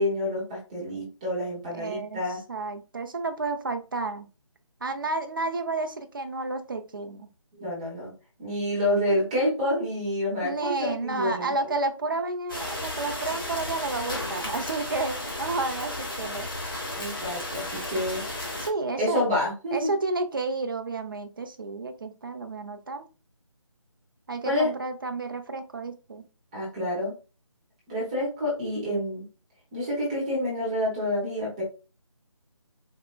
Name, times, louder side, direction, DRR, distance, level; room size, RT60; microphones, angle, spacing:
voice 1, 0.0-2.4 7.5-8.1 8.4-11.5 17.0-18.2 19.0-19.9 24.4-24.7 26.5-27.1 27.9-29.2 29.7-31.6, left 1 dB, 10° right, -5 dB, 0.8 m, -28 dB
voice 2, 1.7-2.2 2.5-4.3 4.8-7.3 10.4-16.5 18.6-19.2 19.7-23.1 24.3-26.3, right 3 dB, 40° right, 7 dB, 0.5 m, -31 dB
sound 1, 12.5-18.7, left 1 dB, 40° left, 0.9 m, -34 dB
4.4 x 2.1 x 2.2 m, 0.32 s
figure-of-eight pair, 160°, 17 cm